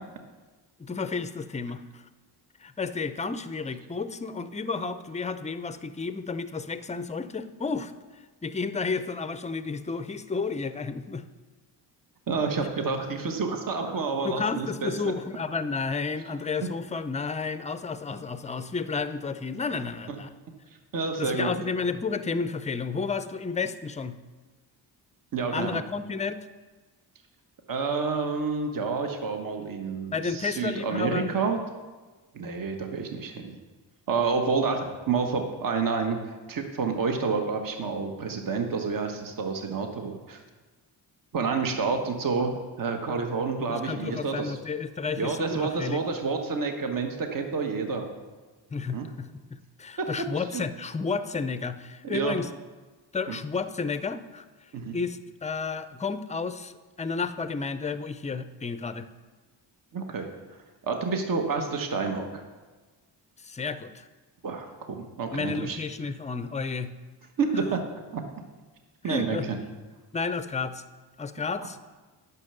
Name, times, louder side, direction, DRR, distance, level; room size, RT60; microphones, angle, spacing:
voice 1, 0.8-2.0 2.6-11.2 14.2-20.3 21.2-24.2 25.5-26.5 30.1-31.3 43.6-46.0 48.7-52.5 53.1-54.4 54.9-56.7 57.0-59.1 63.4-64.1 65.3-66.9 69.0-69.5 70.1-70.8 71.2-71.9, left 4 dB, 15° left, 12 dB, 0.5 m, -32 dB
voice 2, 12.3-14.9 20.1-20.2 20.9-21.5 25.3-25.8 27.7-31.6 32.3-33.6 34.1-40.4 41.3-44.6 45.2-48.1 48.9-49.1 50.0-50.1 50.5-50.6 52.0-52.4 53.3-53.4 54.7-54.9 59.9-60.3 60.8-62.4 64.4-65.8 67.4-67.8 68.1-68.2 69.0-69.6, right 4 dB, 50° right, 4 dB, 1.2 m, -29 dB
9.7 x 6.0 x 6.7 m, 1.3 s
cardioid pair, 95°, 43 cm